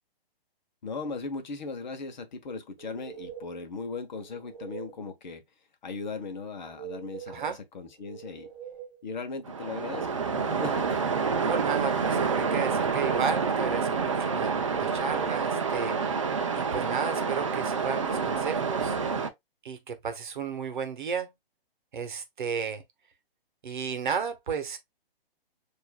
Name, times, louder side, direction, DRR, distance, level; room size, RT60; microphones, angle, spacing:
voice 1, 0.8-5.4 5.8-8.5 9.0-11.1, left 4 dB, 50° left, 0.9 m, -38 dB
sound 1, 2.8-3.6 4.1-5.0 6.6-7.6 7.9-9.0 10.4-11.5 11.9-12.9 14.5-15.5, right 8 dB, 15° right, 0.8 m, -44 dB
voice 2, 7.3-7.6 11.4-16.0 16.5-19.0 19.6-21.3 21.9-22.8 23.6-24.8, right 6 dB, 55° right, 0.9 m, -33 dB
Waves surf, 9.5-19.3, right 5 dB, 35° right, 0.4 m, -28 dB
6.8 x 2.6 x 2.2 m
hypercardioid pair, 165°, 30 cm